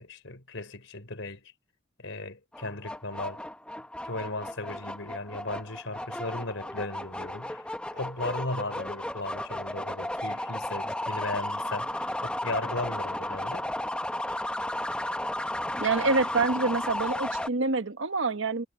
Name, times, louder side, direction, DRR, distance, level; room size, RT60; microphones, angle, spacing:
voice 1, 0.0-1.5 2.0-3.4 4.0-7.7 7.9-13.7, left 2 dB, 75° left, 3.8 m, -36 dB
sound 1, 2.5-17.5, left 1 dB, 5° left, 1.0 m, -34 dB
voice 2, 15.8-18.6, right 3 dB, 80° right, 1.4 m, -26 dB
head